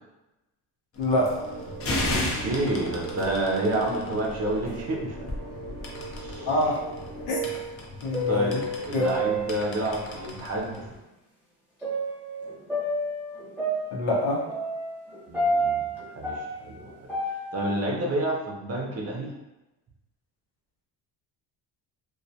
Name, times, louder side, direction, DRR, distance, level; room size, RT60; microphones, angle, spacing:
sound 1, 1.0-11.0, left 1 dB, 35° left, 0.5 m, -36 dB
sound 2, 1.1-7.3, right 3 dB, 85° right, 0.7 m, -40 dB
voice 1, 2.1-5.2 6.2-6.5 8.3-10.8 15.3-15.9 16.2-16.3 16.6-16.9 17.5-19.3, right 1 dB, 35° right, -1 dB, 0.6 m, -29 dB
voice 2, 6.4-6.8 7.3-7.4 8.0-8.6 8.9-9.1 13.9-14.4, left 1 dB, 90° left, -3 dB, 0.8 m, -25 dB
sound 3, 6.4-6.9 7.2-10.0 10.7-10.8 11.8-17.8, right 1 dB, 5° right, 0.7 m, -30 dB
2.3 x 2.2 x 2.7 m, 1.0 s
cardioid pair, 105°, 42 cm